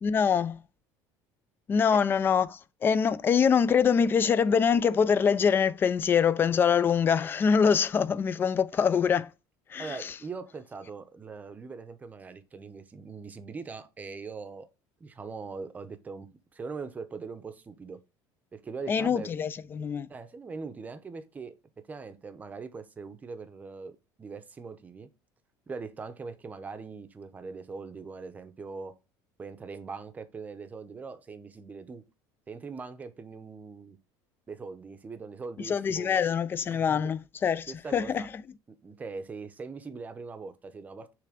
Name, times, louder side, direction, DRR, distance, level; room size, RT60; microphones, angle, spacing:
voice 1, 0.0-0.6 1.7-9.3 9.7-10.1 18.9-20.1 35.7-38.2, left 6 dB, 25° left, 0.4 m, -24 dB
voice 2, 9.8-14.7 15.0-18.0 18.5-19.3 20.1-21.5 21.9-25.1 25.7-28.9 29.4-32.0 32.5-34.0 34.5-36.3 36.7-37.0 37.7-38.3 38.7-41.1, right 4 dB, 20° right, 0.7 m, -41 dB
6.9 x 3.3 x 5.0 m
cardioid pair, 145°, 8 cm